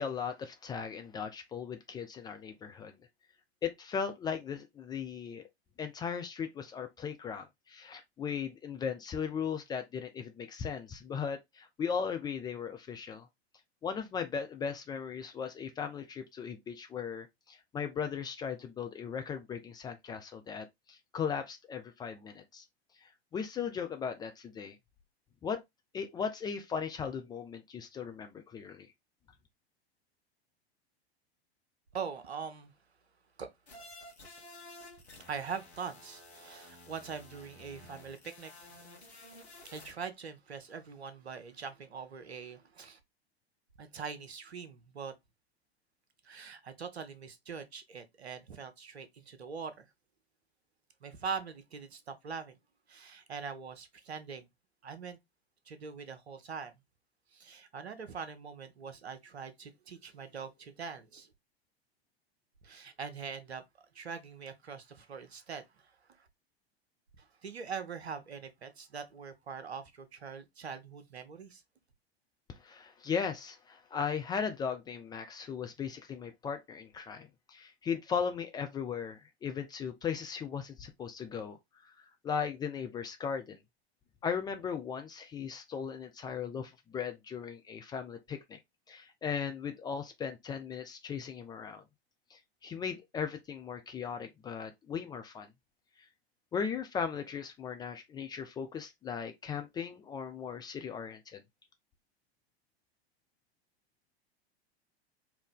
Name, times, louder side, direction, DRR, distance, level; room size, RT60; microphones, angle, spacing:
voice 1, 0.0-2.9 3.6-5.4 5.8-13.3 13.8-22.6 23.0-24.8 25.4-25.6 25.9-28.9 72.6-81.6 81.8-83.6 84.2-88.6 88.9-91.8 92.3-95.5 96.5-101.4, left 6 dB, 15° left, 0.4 m, -37 dB
voice 2, 31.9-32.7 33.4-33.5 35.3-38.5 39.7-43.0 43.8-45.1 46.2-49.9 51.0-52.6 52.9-54.5 54.8-55.2 55.7-56.7 57.3-61.3 62.6-63.6 63.9-65.9 66.2-66.3 67.2-71.6, right 6 dB, 75° right, 1.0 m, -42 dB
sound 1, 33.7-39.9, left 2 dB, 80° left, 1.6 m, -52 dB
4.8 x 2.6 x 3.6 m
figure-of-eight pair, 90°, 32 cm